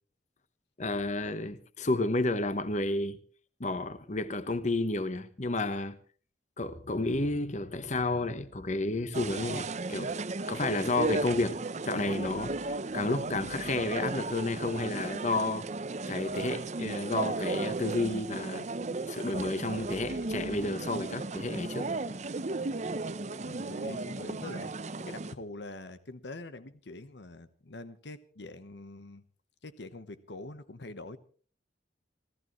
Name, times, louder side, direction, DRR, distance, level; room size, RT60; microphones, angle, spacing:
voice 1, 0.8-3.2 3.6-6.0 6.6-10.1 10.5-11.6 11.8-15.7 16.1-21.9, left 2 dB, 40° left, 1.1 m, -31 dB
sound 1, 9.1-25.3, right 3 dB, 40° right, 0.7 m, -35 dB
voice 2, 23.4-24.7 25.1-29.2 29.6-31.2, left 2 dB, 75° left, 1.1 m, -44 dB
29.5 x 14.0 x 3.1 m
head